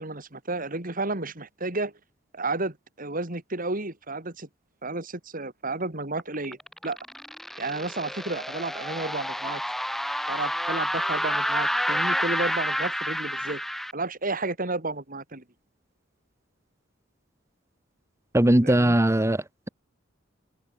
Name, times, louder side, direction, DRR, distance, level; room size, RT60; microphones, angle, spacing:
voice 1, 0.0-1.9 2.3-4.5 4.8-6.6 6.8-7.0 7.6-9.6 10.3-13.6 13.9-15.4 18.6-19.0, right 2 dB, 45° right, 3.7 m, -32 dB
sound 1, 6.2-13.9, equal, ahead, 5.7 m, -29 dB
voice 2, 18.3-19.7, right 1 dB, 15° right, 1.1 m, -20 dB
head